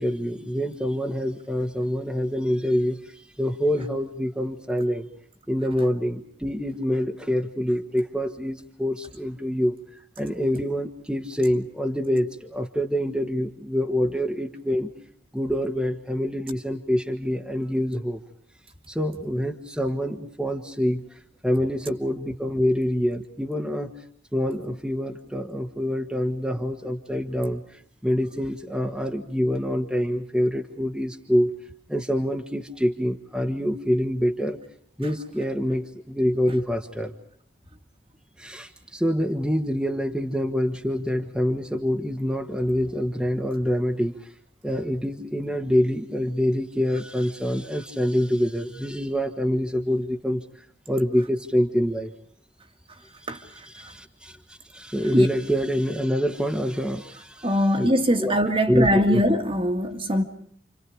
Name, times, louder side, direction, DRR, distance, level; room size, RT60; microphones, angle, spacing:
voice 1, 0.0-5.1 5.5-9.8 10.2-14.9 15.3-18.2 18.9-21.0 21.4-23.9 24.3-31.5 31.9-34.6 35.0-37.1 38.4-44.3 44.6-50.4 50.9-52.1 53.3-57.9 58.2-58.3 58.7-59.2, equal, 5° right, 1.6 m, -26 dB
voice 2, 57.4-60.2, equal, 30° right, 2.1 m, -22 dB
30.0 x 27.0 x 5.0 m
head